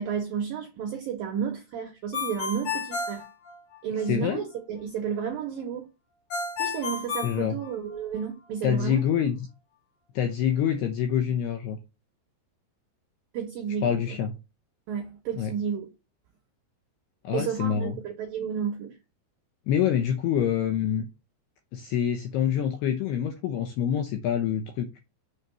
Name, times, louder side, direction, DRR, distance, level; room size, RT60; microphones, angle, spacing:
voice 1, 0.0-3.2 3.8-5.9 6.6-9.0 13.3-14.2 14.9-15.9 17.3-19.0, right 7 dB, 85° right, 2.0 m, -32 dB
Ringtone, 2.1-4.1 6.3-8.2, left 5 dB, 50° left, 2.6 m, -32 dB
voice 2, 4.1-4.4 7.2-7.6 8.6-9.5 10.1-11.8 13.8-14.4 15.4-15.5 17.2-18.0 19.7-21.1 21.7-25.0, left 9 dB, 80° left, 2.4 m, -26 dB
6.7 x 4.5 x 6.8 m
omnidirectional pair, 5.8 m